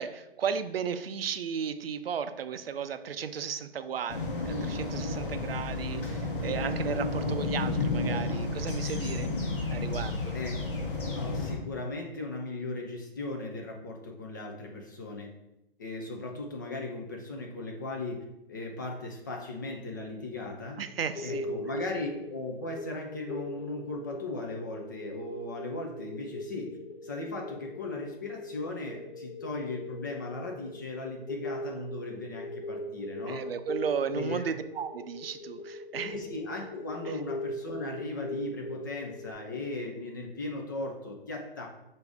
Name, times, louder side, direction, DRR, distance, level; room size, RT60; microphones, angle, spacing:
voice 1, 0.0-9.3 9.7-10.3 20.8-21.5 33.3-36.2 37.0-37.2, right 7 dB, 75° right, 10 dB, 0.5 m, -35 dB
sound 1, 4.1-11.5, left 3 dB, 60° left, 1.1 m, -31 dB
voice 2, 11.2-15.3 15.8-20.8 21.2-26.8 27.0-33.5 34.1-34.5 36.0-41.7, left 2 dB, 20° left, 2 dB, 0.3 m, -37 dB
sound 2, 20.9-39.3, left 1 dB, 85° left, 0.6 m, -40 dB
5.9 x 2.6 x 3.4 m, 0.90 s
figure-of-eight pair, 135°, 30 cm